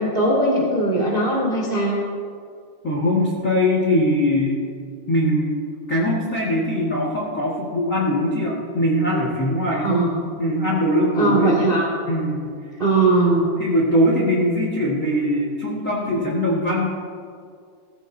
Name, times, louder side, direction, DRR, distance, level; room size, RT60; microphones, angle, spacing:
voice 1, 0.0-2.0 9.7-10.2 11.1-11.9 12.8-13.5, right 2 dB, 25° right, -3 dB, 1.1 m, -20 dB
voice 2, 2.8-4.6 5.1-5.6 5.9-10.1 10.4-11.5 12.1-12.5 13.6-16.9, left 1 dB, 50° left, -4 dB, 0.9 m, -21 dB
16.5 x 15.0 x 2.7 m, 2.2 s
omnidirectional pair, 4.7 m